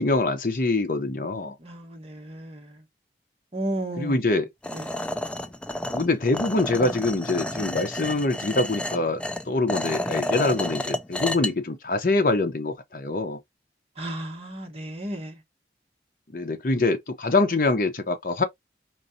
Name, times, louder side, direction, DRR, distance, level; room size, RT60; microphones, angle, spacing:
voice 1, 0.0-1.5 4.0-4.5 5.9-13.4 16.3-18.4, left 2 dB, 50° left, 0.7 m, -24 dB
voice 2, 1.6-2.8 3.5-4.2 4.7-5.0 14.0-15.4, right 1 dB, 35° right, 1.2 m, -34 dB
sound 1, 4.6-11.5, left 1 dB, 5° left, 0.3 m, -30 dB
4.6 x 2.5 x 2.7 m
head